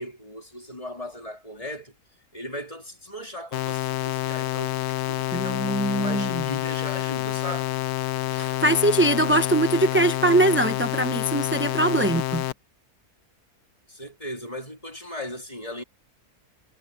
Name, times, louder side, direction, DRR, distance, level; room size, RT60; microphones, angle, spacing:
voice 1, 0.0-2.0 2.3-4.8 5.0-7.7 8.4-8.6 13.9-15.8, left 1 dB, 20° left, 3.6 m, -37 dB
sound 1, 3.5-12.5, left 15 dB, 80° left, 1.1 m, -28 dB
voice 2, 5.3-6.4 8.3-12.4, right 1 dB, 10° right, 0.7 m, -22 dB
omnidirectional pair, 1.6 m